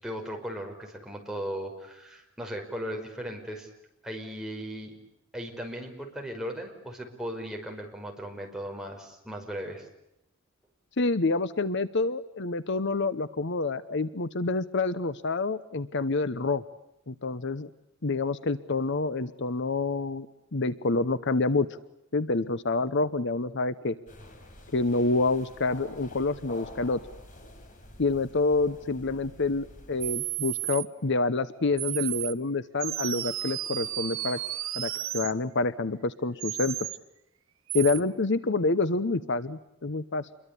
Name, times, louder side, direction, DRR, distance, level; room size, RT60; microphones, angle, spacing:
voice 1, 0.0-3.7 4.0-4.9 5.3-9.8, equal, 5° right, 1 dB, 5.2 m, -37 dB
voice 2, 11.0-16.6 17.1-17.7 18.0-20.3 20.5-21.7 22.1-24.0 24.7-27.0 28.0-34.4 34.7-36.9 37.7-40.3, left 3 dB, 60° left, 15 dB, 0.9 m, -27 dB
sound 1, 24.1-30.1, left 1 dB, 40° left, 4.5 m, -48 dB
sound 2, 30.0-30.9 31.8-32.3 32.8-35.3 36.4-37.0 37.7-38.0, right 14 dB, 75° right, 1.3 m, -33 dB
28.0 x 23.0 x 8.4 m, 0.85 s
head